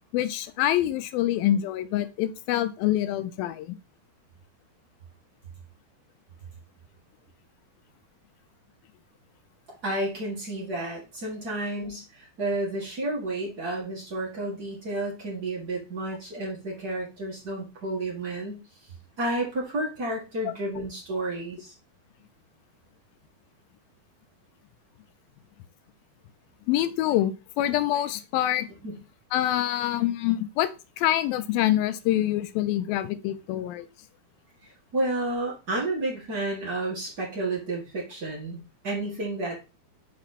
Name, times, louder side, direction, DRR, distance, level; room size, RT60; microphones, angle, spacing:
voice 1, 0.1-3.8 20.5-20.6 26.7-28.7 29.3-30.7 31.0-33.9, left 13 dB, 80° left, 11 dB, 2.3 m, -25 dB
voice 2, 9.8-18.6 19.2-21.7 28.8-29.0 34.6-39.6, right 2 dB, 40° right, -4 dB, 1.6 m, -31 dB
6.1 x 4.3 x 4.2 m, 0.30 s
omnidirectional pair, 4.3 m